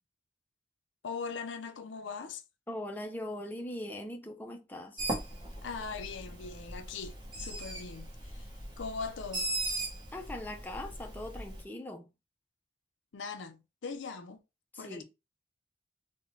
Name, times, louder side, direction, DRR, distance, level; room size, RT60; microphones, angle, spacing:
voice 1, 1.0-2.4 5.6-8.5 8.8-9.5 13.1-14.4 14.8-15.0, left 5 dB, 80° left, 0.5 m, -40 dB
voice 2, 2.7-5.0 10.1-12.1 14.7-15.0, left 1 dB, 10° left, 0.4 m, -40 dB
Bird, 5.0-11.6, right 1 dB, 25° right, 1.0 m, -39 dB
3.9 x 2.1 x 3.1 m
head